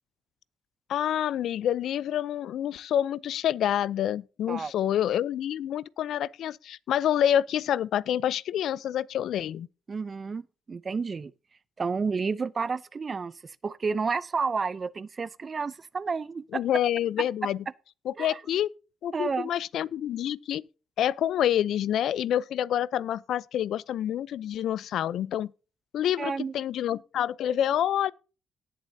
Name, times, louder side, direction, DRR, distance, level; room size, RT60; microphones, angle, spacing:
voice 1, 0.9-9.7 16.5-17.6 18.0-18.7 19.0-20.6 21.0-25.5 25.9-28.1, left 10 dB, 75° left, 0.5 m, -27 dB
voice 2, 9.9-11.3 11.8-13.3 13.6-16.6 18.2-18.4 19.1-19.5 26.2-26.5, right 5 dB, 35° right, 0.6 m, -30 dB
18.5 x 7.4 x 2.7 m
cardioid pair, 90°, 0 cm